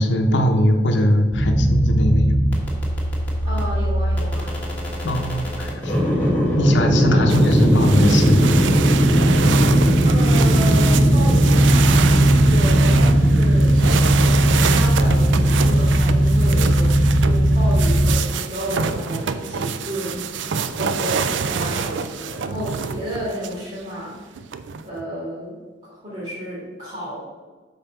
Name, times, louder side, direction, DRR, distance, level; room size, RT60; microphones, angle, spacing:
voice 1, 0.0-2.3 5.0-5.9 6.6-8.7 9.4-9.6, equal, 65° left, 5 dB, 0.8 m, -20 dB
sound 1, 1.3-18.2, equal, 10° left, 1.6 m, -17 dB
voice 2, 3.4-4.5 6.9-7.3 10.0-12.1 12.4-13.8 14.2-24.3 24.8-25.6 25.8-27.2, equal, 30° right, -10 dB, 2.1 m, -31 dB
sound 2, 7.3-23.6 24.4-25.0, right 6 dB, 70° right, 0.4 m, -26 dB
5.5 x 4.1 x 5.7 m, 1.4 s
head